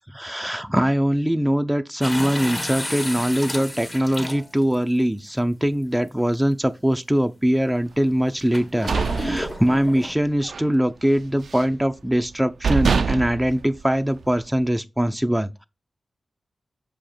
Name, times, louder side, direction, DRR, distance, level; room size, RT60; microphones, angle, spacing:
voice 1, 0.1-15.7, equal, 5° right, 0.6 m, -22 dB
sound 1, 2.0-4.7 5.6-5.7 8.5-10.1, left 1 dB, 25° left, 1.6 m, -31 dB
sound 2, 8.5-10.1 10.4-10.7 11.0-11.8 12.3-12.4 12.6-14.5, right 5 dB, 75° right, 0.4 m, -25 dB
6.5 x 5.1 x 4.4 m
wide cardioid pair, 75°, 0 cm